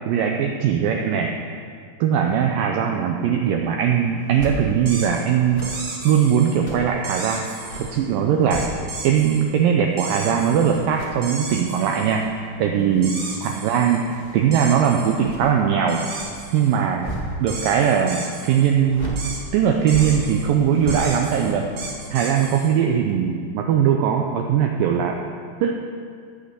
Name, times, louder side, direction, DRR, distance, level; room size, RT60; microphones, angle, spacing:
voice 1, 0.1-1.3 2.0-5.7 6.0-7.4 7.8-8.6 9.0-12.2 12.6-13.1 13.4-14.0 14.3-16.0 16.5-17.1 17.4-19.1 19.5-21.7 22.1-25.2 25.6-25.7, right 8 dB, 80° right, 2 dB, 2.0 m, -20 dB
sound 1, 4.2-4.6 5.4-7.0 7.4-9.1 9.4-17.8 18.8-22.6 23.0-23.1, right 1 dB, 70° left, 0.5 m, -37 dB
sound 2, 4.8-5.2 5.6-6.6 7.0-7.9 8.5-9.4 10.0-10.8 11.2-12.2 13.0-14.0 14.5-15.2 15.9-16.8 17.5-18.7 19.2-19.4 19.9-20.5 20.9-22.7, right 3 dB, 50° right, 1.4 m, -34 dB
16.5 x 6.3 x 6.9 m, 2.3 s
omnidirectional pair, 4.7 m